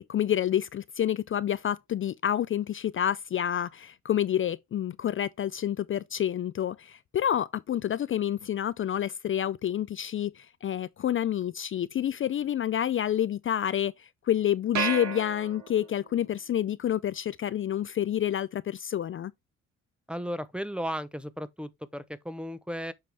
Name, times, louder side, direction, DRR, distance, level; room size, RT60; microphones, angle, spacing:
voice 1, 0.0-19.3, left 10 dB, 45° left, 0.4 m, -28 dB
sound 1, 14.8-16.1, right 7 dB, 70° right, 3.0 m, -32 dB
voice 2, 20.1-22.9, equal, 5° right, 0.8 m, -35 dB
7.7 x 5.0 x 3.4 m
cardioid pair, 90°, 30 cm